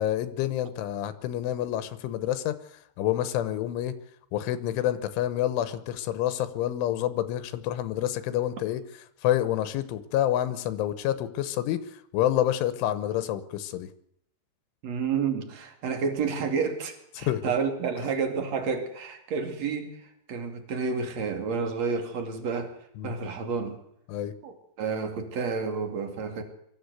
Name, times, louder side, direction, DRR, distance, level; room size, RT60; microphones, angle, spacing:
voice 1, 0.0-2.6 3.0-3.9 4.3-8.8 9.2-11.8 12.1-13.9 17.2-17.4 23.0-23.1 24.1-24.3, left 12 dB, 85° left, 12 dB, 3.6 m, -28 dB
voice 2, 14.8-20.0 20.3-22.8 23.0-23.8 24.4-26.4, right 5 dB, 45° right, 5 dB, 3.0 m, -30 dB
23.5 x 14.0 x 8.2 m, 0.75 s
omnidirectional pair, 5.5 m